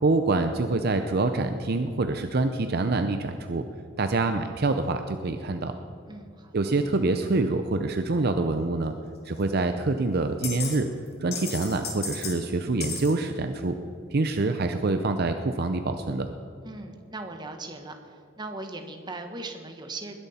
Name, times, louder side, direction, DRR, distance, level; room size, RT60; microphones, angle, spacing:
voice 1, 0.0-3.6 4.0-5.8 6.5-8.9 9.2-10.9 11.2-13.7 14.1-16.3, right 3 dB, 50° right, 7 dB, 0.6 m, -26 dB
voice 2, 6.1-6.6 16.6-18.0 18.4-20.1, right 2 dB, 20° right, 5 dB, 1.3 m, -38 dB
sound 1, 9.4-9.5 10.4-10.8 11.1-12.4 12.8-13.1, left 5 dB, 50° left, 2.7 m, -34 dB
20.5 x 10.5 x 4.3 m, 2.5 s
head